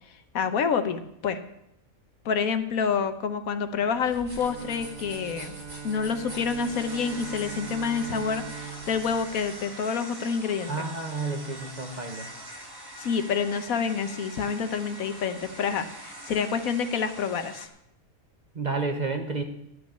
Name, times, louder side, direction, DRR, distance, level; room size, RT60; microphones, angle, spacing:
voice 1, 0.3-1.4 2.2-5.6 5.8-10.9 13.0-17.7, left 6 dB, 75° left, 10 dB, 1.3 m, -28 dB
sound 1, 4.0-9.6, right 1 dB, 60° right, 3.8 m, -46 dB
Bowed string instrument, 4.4-10.5, right 7 dB, 75° right, 1.4 m, -42 dB
sound 2, 5.7-17.7, right 1 dB, 15° right, 1.2 m, -43 dB
voice 2, 10.7-12.3 18.5-19.4, right 3 dB, 35° right, 5 dB, 1.0 m, -30 dB
12.0 x 6.2 x 8.6 m, 0.79 s
omnidirectional pair, 1.5 m